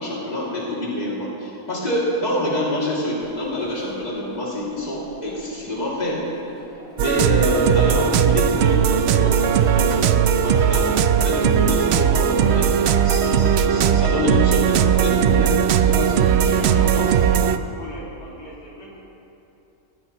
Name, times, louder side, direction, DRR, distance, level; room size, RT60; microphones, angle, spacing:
voice 1, 0.0-6.3 7.0-10.9 11.2-12.7 13.0-17.1, left 1 dB, 25° left, -6 dB, 2.6 m, -26 dB
Crowd, 3.2-17.3, right 1 dB, 60° right, 2.1 m, -44 dB
sound 1, 7.0-17.6, right 8 dB, 75° right, 0.6 m, -18 dB
voice 2, 16.3-19.0, left 1 dB, 70° left, -6 dB, 2.8 m, -37 dB
19.0 x 14.5 x 3.0 m, 2.8 s
omnidirectional pair, 1.6 m